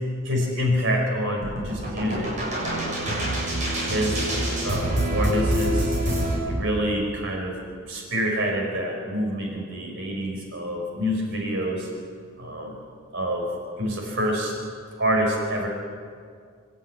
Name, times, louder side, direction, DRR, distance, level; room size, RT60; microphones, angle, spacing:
voice 1, 0.3-2.3 2.9-3.3 3.9-4.3 4.6-5.9 6.5-7.6 7.9-11.9 12.4-12.8 13.1-13.5 13.8-14.5 15.0-15.7, equal, 55° right, 1 dB, 4.3 m, -27 dB
sound 1, 1.4-6.4, right 1 dB, 35° right, 7.3 m, -26 dB
26.0 x 11.5 x 9.4 m, 2.1 s
head